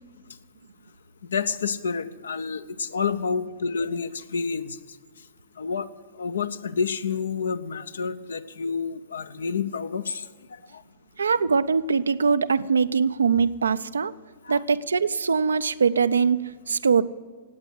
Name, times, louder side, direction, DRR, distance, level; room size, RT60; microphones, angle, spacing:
voice 1, 1.3-4.8 5.6-5.9 6.2-10.2 14.4-14.6, left 5 dB, 70° left, 13 dB, 0.7 m, -29 dB
voice 2, 11.2-14.1 14.5-17.0, right 5 dB, 70° right, 14 dB, 0.5 m, -22 dB
17.5 x 8.9 x 7.8 m, 1.4 s
figure-of-eight pair, 105°, 0 cm